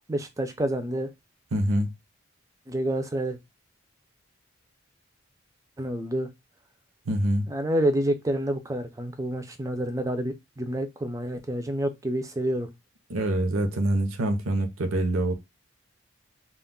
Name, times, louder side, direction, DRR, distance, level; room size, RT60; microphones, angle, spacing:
voice 1, 0.1-1.1 2.7-3.4 5.8-6.3 7.5-12.7, right 1 dB, 15° right, 0.3 m, -28 dB
voice 2, 1.5-1.9 7.1-7.5 13.1-15.3, right 1 dB, 80° right, 0.6 m, -25 dB
2.2 x 2.0 x 3.6 m
head